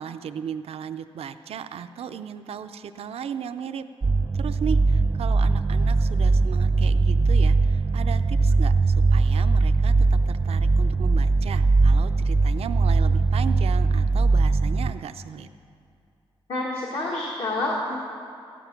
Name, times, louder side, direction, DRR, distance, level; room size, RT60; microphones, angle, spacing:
voice 1, 0.0-3.8 4.3-15.5, right 8 dB, 85° right, 9 dB, 0.5 m, -36 dB
sound 1, 4.0-14.9, right 3 dB, 25° right, 0.3 m, -20 dB
voice 2, 16.5-18.0, left 2 dB, 75° left, -4 dB, 1.7 m, -28 dB
15.0 x 11.0 x 5.8 m, 2.5 s
wide cardioid pair, 125°, 10 cm